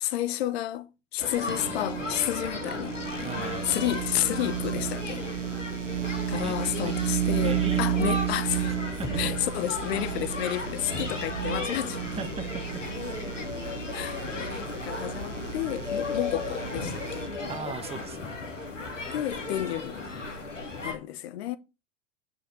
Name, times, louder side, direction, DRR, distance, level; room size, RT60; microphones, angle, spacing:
voice 1, 0.0-3.0 3.6-5.2 6.3-8.7 9.2-12.0 13.9-17.3 19.1-20.1 20.8-21.6, left 13 dB, 55° left, 1.0 m, -31 dB
sound 1, 1.2-21.0, left 3 dB, 90° left, 2.1 m, -35 dB
sound 2, 1.5-17.3, right 10 dB, 85° right, 1.3 m, -32 dB
voice 2, 3.2-3.6 6.4-6.9 7.4-8.3 8.7-9.1 12.2-12.8 17.5-18.3, right 5 dB, 15° right, 1.4 m, -39 dB
9.1 x 5.1 x 5.2 m
figure-of-eight pair, 85°, 36 cm